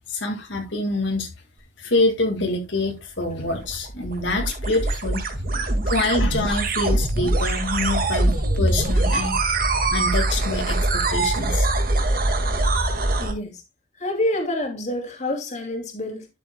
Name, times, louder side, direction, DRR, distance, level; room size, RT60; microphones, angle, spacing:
voice 1, 0.1-1.3 1.8-5.2 5.9-9.4 9.9-11.7, left 2 dB, 65° left, 2.0 m, -26 dB
sound 1, 3.5-13.3, right 2 dB, 45° right, 1.9 m, -23 dB
voice 2, 13.2-13.6 13.9-16.3, left 1 dB, 35° left, 2.6 m, -28 dB
12.0 x 7.5 x 2.2 m
head